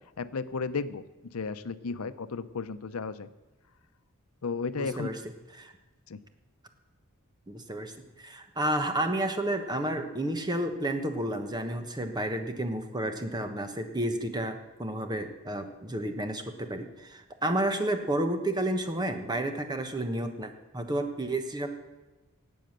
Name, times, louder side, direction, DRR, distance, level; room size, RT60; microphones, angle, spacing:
voice 1, 0.2-1.0 1.3-3.3 4.4-5.1 6.1-6.2, left 4 dB, 90° left, 13 dB, 0.7 m, -33 dB
voice 2, 4.8-5.2 5.6-5.7 7.5-21.7, right 1 dB, 20° right, 7 dB, 1.2 m, -31 dB
18.5 x 7.9 x 6.6 m, 1.1 s
head